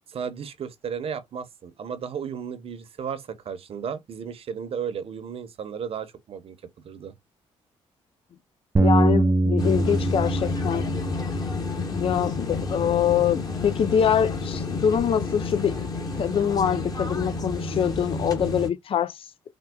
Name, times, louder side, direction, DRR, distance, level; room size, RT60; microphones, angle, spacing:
voice 1, 0.1-6.6 6.8-7.1 12.8-12.9, right 7 dB, 55° right, 0.8 m, -34 dB
voice 2, 8.8-10.9 11.8-15.9 16.2-19.2, left 8 dB, 50° left, 0.4 m, -24 dB
Bass guitar, 8.8-13.2 13.8-15.0, right 2 dB, 25° right, 0.5 m, -26 dB
sound 1, 9.6-18.7, left 3 dB, 35° left, 1.3 m, -30 dB
4.4 x 2.2 x 2.2 m
cardioid pair, 80°, 12 cm